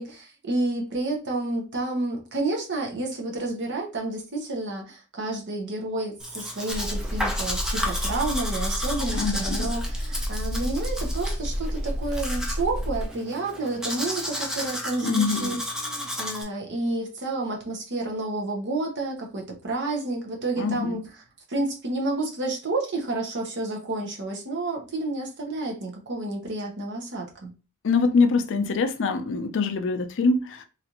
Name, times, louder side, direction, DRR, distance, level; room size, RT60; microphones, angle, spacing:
voice 1, 0.0-21.0 21.5-27.5, right 2 dB, 55° right, 0.9 m, -30 dB
Domestic sounds home sounds, 6.2-16.4, left 1 dB, 5° right, 0.5 m, -33 dB
sound 1, 6.7-13.1, equal, 30° left, 0.8 m, -30 dB
voice 2, 9.1-9.7 15.0-15.6 20.6-21.0 27.8-30.6, left 4 dB, 60° left, 0.5 m, -24 dB
3.3 x 2.5 x 2.9 m
head